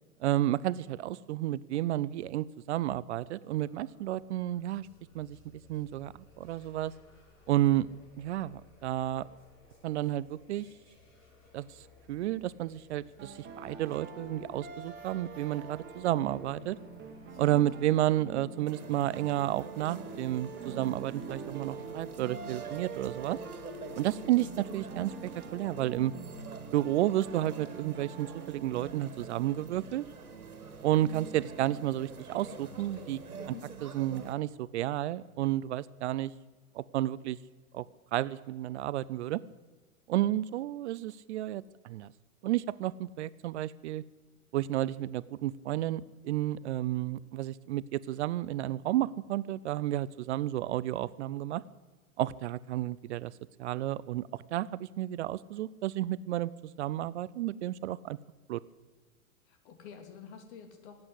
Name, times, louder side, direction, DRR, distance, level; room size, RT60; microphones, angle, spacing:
voice 1, 0.2-4.9 5.1-5.4 5.7-6.9 7.5-7.9 8.2-9.3 9.8-10.7 11.5-11.8 12.1-16.8 17.4-23.4 23.9-26.1 26.7-30.0 30.8-33.2 33.8-36.3 36.7-37.4 37.7-37.8 38.1-39.4 40.1-42.1 42.4-44.0 44.5-51.6 52.2-53.3 53.6-56.5 56.8-58.2 58.5-58.6, right 14 dB, 50° right, 19 dB, 0.5 m, -31 dB
sound 1, 3.6-18.2, left 2 dB, 30° left, 5.4 m, -60 dB
sound 2, 13.2-30.1, right 4 dB, 25° right, 2.4 m, -45 dB
sound 3, 18.7-34.3, right 5 dB, 85° right, 2.1 m, -46 dB
voice 2, 32.7-33.6 59.5-61.0, left 7 dB, 50° left, 6 dB, 2.8 m, -49 dB
18.0 x 8.8 x 8.0 m, 1.3 s
figure-of-eight pair, 105°, 43 cm